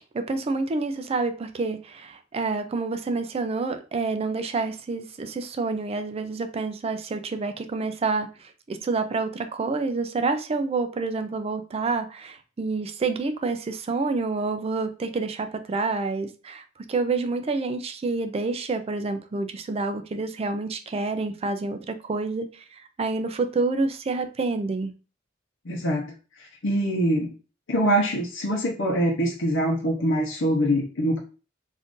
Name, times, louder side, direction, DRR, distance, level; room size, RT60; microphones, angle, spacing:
voice 1, 0.1-24.9, right 3 dB, 30° right, 8 dB, 0.4 m, -28 dB
voice 2, 25.6-27.3 27.7-31.2, equal, 70° left, -1 dB, 0.7 m, -24 dB
2.6 x 2.5 x 3.6 m, 0.34 s
head